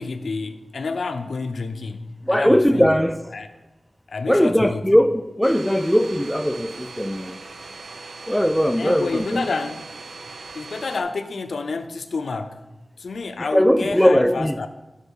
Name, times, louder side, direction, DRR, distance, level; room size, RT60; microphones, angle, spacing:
voice 1, 0.0-3.0 3.3-3.5 4.1-4.9 8.8-9.8 10.5-12.6 13.0-14.7, left 4 dB, 85° left, 0.5 m, -29 dB
voice 2, 2.3-3.2 4.3-7.4 8.3-9.4 13.4-14.6, equal, 5° left, 0.3 m, -19 dB
Domestic sounds home sounds, 5.4-11.0, right 3 dB, 80° right, 0.7 m, -39 dB
9.0 x 4.4 x 5.4 m
wide cardioid pair, 80°, 0 cm